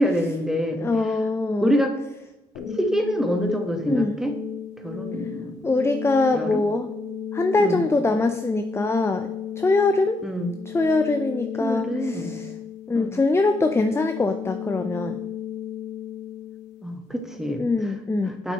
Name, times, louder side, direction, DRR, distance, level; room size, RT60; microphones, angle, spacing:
voice 1, 0.0-0.8 1.6-1.9 2.8-4.3 4.8-5.7 6.3-6.6 7.6-7.8 10.2-10.6 11.6-12.3 12.9-13.1 16.8-17.6 18.4-18.5, equal, ahead, 4 dB, 1.2 m, -25 dB
voice 2, 0.8-1.7 3.9-4.2 5.6-6.9 7.3-9.3 9.6-10.2 10.7-12.5 12.9-15.2 17.6-18.4, left 3 dB, 15° left, 9 dB, 0.5 m, -23 dB
sound 1, 2.5-17.6, left 8 dB, 70° left, 1.4 m, -35 dB
7.9 x 6.0 x 3.0 m, 0.95 s
supercardioid pair, 70°, 19 cm